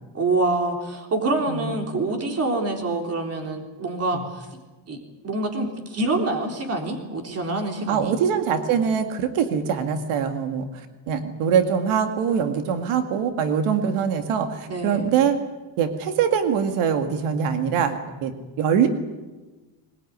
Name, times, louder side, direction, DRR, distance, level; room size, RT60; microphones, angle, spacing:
voice 1, 0.1-4.5 4.9-5.0 5.2-8.1 14.7-15.1, right 2 dB, 30° right, 3 dB, 3.6 m, -26 dB
voice 2, 7.9-15.4 15.8-18.3 18.6-18.9, right 7 dB, 90° right, 7 dB, 2.2 m, -23 dB
21.5 x 20.5 x 9.5 m, 1.2 s
cardioid pair, 175°, 49 cm